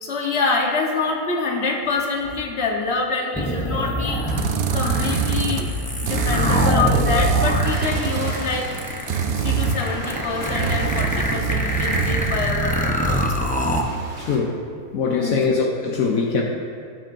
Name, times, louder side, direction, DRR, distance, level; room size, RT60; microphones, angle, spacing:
voice 1, 0.0-5.8 6.0-8.7 9.3-13.4 15.1-15.4, left 4 dB, 50° left, 0 dB, 1.5 m, -26 dB
sound 1, 3.3-13.8, left 1 dB, 10° left, 0.5 m, -24 dB
Creaking Door, 4.3-5.7 6.1-8.4 9.1-12.7, right 7 dB, 70° right, 0.5 m, -24 dB
sound 2, 7.6-14.4, right 1 dB, 85° right, 2.4 m, -35 dB
voice 2, 14.2-14.6 14.9-16.4, left 4 dB, 75° left, 0 dB, 1.2 m, -22 dB
19.0 x 7.5 x 2.6 m, 2.2 s
omnidirectional pair, 1.5 m